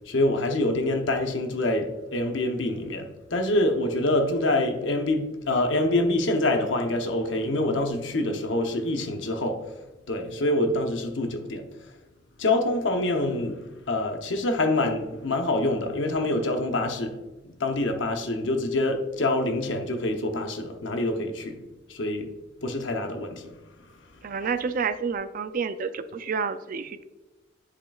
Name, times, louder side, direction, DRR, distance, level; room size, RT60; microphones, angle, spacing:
voice 1, 0.1-9.7 10.1-11.7 12.4-13.6 13.9-17.2 17.6-21.6 21.9-22.3 22.6-23.5, left 2 dB, 65° left, 0.8 m, -26 dB
voice 2, 24.2-27.0, right 5 dB, 45° right, 0.4 m, -29 dB
10.5 x 5.0 x 2.3 m
head